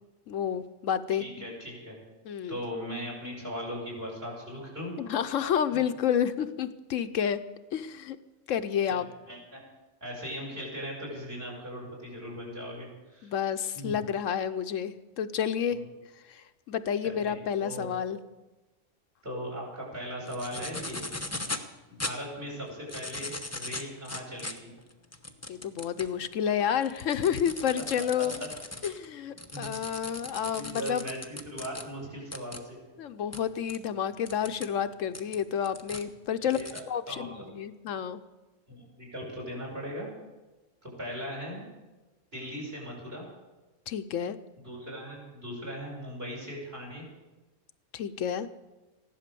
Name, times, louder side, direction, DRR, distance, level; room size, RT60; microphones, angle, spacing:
voice 1, 0.3-1.3 2.2-2.6 5.0-7.4 7.7-8.2 8.5-9.1 13.2-15.8 16.3-18.2 25.5-28.5 28.8-31.0 33.0-36.6 36.9-38.2 43.9-44.4 47.9-48.5, left 8 dB, 80° left, 10 dB, 1.1 m, -30 dB
voice 2, 1.1-1.9 2.5-5.0 5.7-5.8 8.9-9.6 10.0-13.3 13.7-14.0 15.7-15.9 17.0-17.3 17.6-17.8 19.2-21.0 21.9-24.7 28.2-28.3 29.5-29.7 30.5-32.8 36.4-37.4 38.7-40.1 40.8-41.6 42.3-43.3 44.6-47.1, equal, 50° right, -3 dB, 6.3 m, -39 dB
sound 1, 20.3-21.7 22.0-22.1 22.7-26.1 26.6-31.8 32.3-32.6 33.3-33.4 33.7-33.8 34.3-34.7 35.1-36.0 36.5-36.8, left 2 dB, 15° left, 0.9 m, -38 dB
15.5 x 11.5 x 6.8 m, 1.1 s
omnidirectional pair, 1.3 m